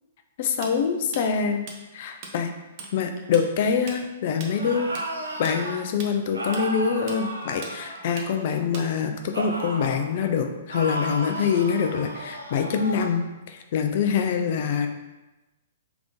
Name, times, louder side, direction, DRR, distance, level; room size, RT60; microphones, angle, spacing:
voice 1, 0.4-1.6 1.9-2.5 2.9-4.9 5.4-14.9, left 6 dB, 50° left, 6 dB, 0.4 m, -25 dB
Tools, 0.6-2.3 2.6-2.9 3.2-9.2, right 4 dB, 40° right, 0.7 m, -40 dB
sound 1, 4.4-5.8 6.3-8.6 9.3-10.0 10.7-13.2, right 1 dB, 80° right, 0.7 m, -34 dB
3.6 x 3.5 x 3.6 m, 1.0 s
figure-of-eight pair, 115°, 0 cm